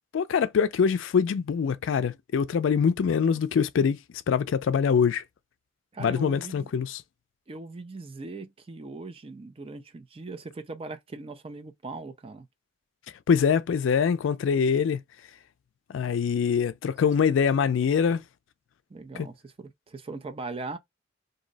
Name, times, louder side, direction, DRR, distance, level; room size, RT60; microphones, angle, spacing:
voice 1, 0.1-5.2 6.0-7.0 13.3-15.0 15.9-18.2 19.2-19.3, left 6 dB, 70° left, 0.3 m, -24 dB
voice 2, 5.9-6.7 7.5-12.5 18.9-20.8, right 3 dB, 30° right, 0.4 m, -40 dB
2.6 x 2.0 x 3.8 m
head